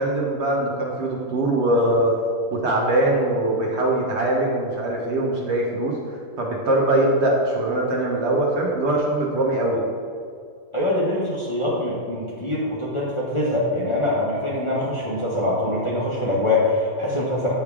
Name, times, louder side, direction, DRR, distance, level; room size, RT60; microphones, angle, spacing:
voice 1, 0.0-2.1 2.5-5.9 6.4-9.8, right 1 dB, 55° right, -2 dB, 1.0 m, -22 dB
voice 2, 10.7-17.5, left 1 dB, 25° left, -6 dB, 0.7 m, -23 dB
8.4 x 3.2 x 3.5 m, 2.2 s
omnidirectional pair, 1.5 m